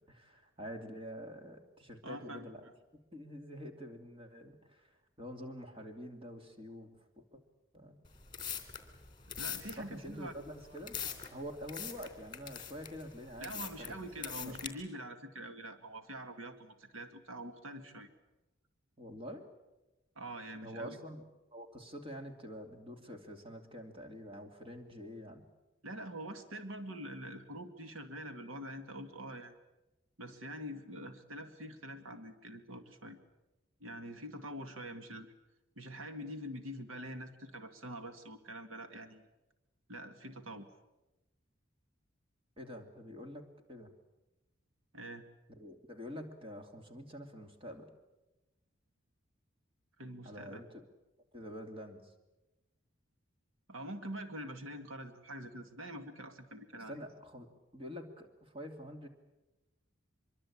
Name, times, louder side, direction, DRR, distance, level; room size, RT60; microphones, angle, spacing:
voice 1, 0.1-2.7 3.1-7.4 7.7-8.0 9.7-11.0 11.3-14.6 19.0-19.4 20.6-21.2 21.5-25.4 42.6-43.9 45.5-47.9 50.2-50.8 51.3-52.1 56.9-57.5 57.7-59.1, equal, 25° right, 4 dB, 2.7 m, -47 dB
voice 2, 2.0-2.5 9.3-10.3 13.4-18.1 20.2-21.0 25.8-29.5 30.2-33.2 33.8-35.3 35.8-39.3 39.9-40.7 44.9-45.2 50.0-50.6 53.7-57.0, right 1 dB, 85° right, 8 dB, 2.1 m, -45 dB
sound 1, 8.0-14.7, left 8 dB, 20° left, 3.2 m, -43 dB
25.0 x 23.0 x 8.7 m, 1.0 s
head